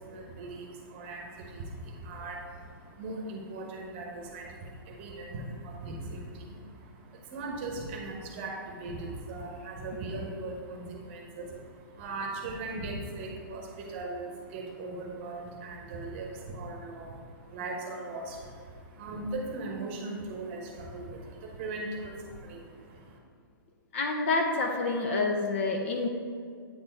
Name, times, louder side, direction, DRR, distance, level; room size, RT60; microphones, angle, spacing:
voice 1, 0.0-23.2, right 2 dB, 30° right, 0 dB, 1.0 m, -39 dB
voice 2, 23.9-26.1, left 3 dB, 35° left, 3 dB, 0.6 m, -28 dB
8.5 x 4.4 x 4.5 m, 2.2 s
hypercardioid pair, 165°, 12 cm